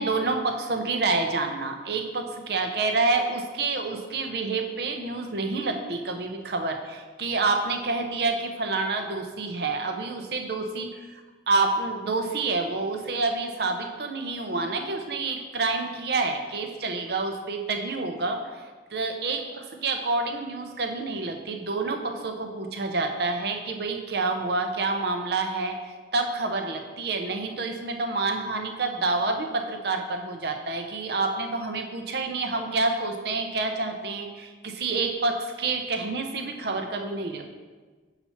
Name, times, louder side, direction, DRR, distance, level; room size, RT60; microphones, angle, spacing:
voice 1, 0.0-11.2 11.5-37.6, right 3 dB, 60° right, 5 dB, 0.6 m, -28 dB
6.7 x 5.6 x 3.0 m, 1.4 s
head